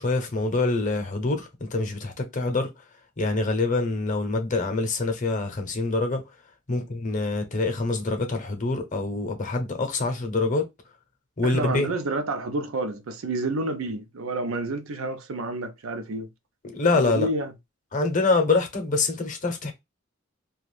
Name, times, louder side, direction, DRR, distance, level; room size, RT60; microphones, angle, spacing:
voice 1, 0.0-2.7 3.2-6.2 6.7-10.7 11.4-11.9 16.6-17.3 17.9-19.7, left 3 dB, 40° left, 0.7 m, -25 dB
voice 2, 11.4-16.3 16.9-17.5, right 2 dB, 85° right, 0.5 m, -29 dB
2.5 x 2.3 x 3.2 m
head